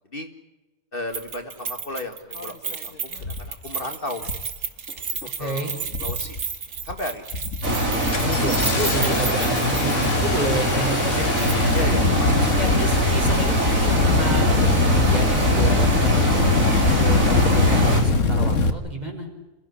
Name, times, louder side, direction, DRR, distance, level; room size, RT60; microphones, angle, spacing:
voice 1, 0.9-4.2 5.0-5.1 5.4-6.4 6.9-7.3 11.7-12.4, left 2 dB, 45° left, 5 dB, 2.0 m, -34 dB
Keys jangling, 1.1-10.3 10.6-10.7 11.4-11.9 12.2-12.3, right 5 dB, 75° right, 2.0 m, -33 dB
Engine starting, 2.4-2.5 3.2-3.5 4.2-4.5 4.9-5.4 5.9-6.4 6.8-7.0 7.3-18.7, left 3 dB, 70° left, 2.1 m, -22 dB
voice 2, 5.4-5.7 8.2-11.7 12.3-19.3, right 1 dB, 30° right, 3 dB, 5.0 m, -30 dB
sound 1, 7.6-18.0, equal, 90° right, 5.0 m, -23 dB
28.0 x 16.0 x 10.0 m, 1.1 s
omnidirectional pair, 1.4 m